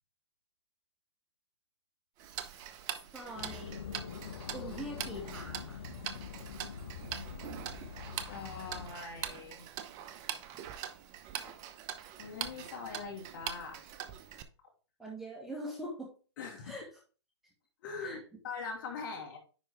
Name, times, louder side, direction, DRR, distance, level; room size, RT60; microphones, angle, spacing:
Tick-tock, 2.2-14.4, right 10 dB, 25° right, 0.7 m, -43 dB
voice 1, 3.1-3.8 4.5-5.8 15.0-16.1 16.6-16.9 18.0-18.2, right 1 dB, 5° right, -3 dB, 1.9 m, -43 dB
sound 1, 3.4-8.9, left 7 dB, 60° left, 1.3 m, -44 dB
voice 2, 8.3-9.6 11.5-11.6 12.2-13.8 16.4-16.8 17.8-19.4, left 5 dB, 45° left, 2 dB, 2.6 m, -42 dB
10.0 x 4.5 x 3.5 m, 0.36 s
hypercardioid pair, 135°, 15 cm